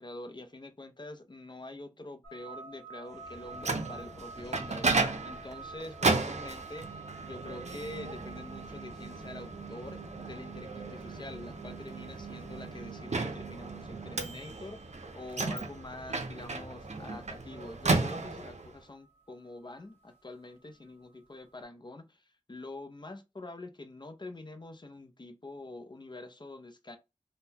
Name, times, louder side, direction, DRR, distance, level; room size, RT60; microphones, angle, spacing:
voice 1, 0.0-27.0, left 2 dB, 35° left, 0.5 m, -46 dB
sound 1, 2.2-21.3, right 4 dB, 15° left, 1.3 m, -51 dB
Microwave oven, 3.3-18.7, right 3 dB, 60° right, 0.5 m, -34 dB
3.6 x 2.1 x 2.8 m
wide cardioid pair, 55°, 13 cm